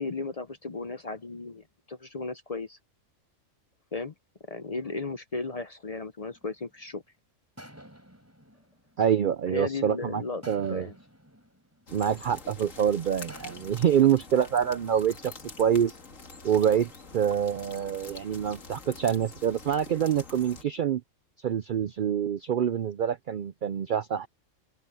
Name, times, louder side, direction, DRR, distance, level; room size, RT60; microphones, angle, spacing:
voice 1, 0.0-2.8 3.9-4.1 4.5-7.0 9.5-10.4 10.7-10.9, left 3 dB, 40° left, 0.6 m, -35 dB
sound 1, 6.3-7.0 7.6-9.8 10.4-12.7 13.3-15.5, equal, 10° right, 4.4 m, -52 dB
voice 2, 9.0-10.9 11.9-15.3 15.6-16.0 16.4-21.0 21.4-24.3, right 9 dB, 60° right, 0.5 m, -26 dB
sound 2, 11.9-20.6, left 4 dB, 75° left, 2.6 m, -46 dB
open air
omnidirectional pair, 1.3 m